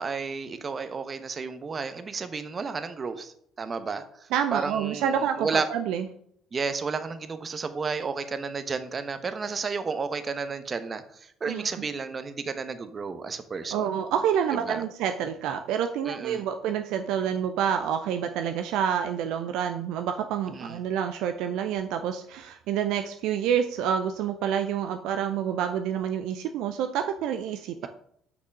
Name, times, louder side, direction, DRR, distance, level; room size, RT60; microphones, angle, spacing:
voice 1, 0.0-5.6 6.5-13.9 14.7-14.8 16.0-16.4 20.5-20.8 27.8-27.9, right 5 dB, 35° right, 11 dB, 0.9 m, -32 dB
voice 2, 4.3-6.1 11.5-11.9 13.7-27.9, right 8 dB, 65° right, 7 dB, 0.5 m, -28 dB
6.0 x 6.0 x 5.2 m, 0.68 s
figure-of-eight pair, 55°, 0 cm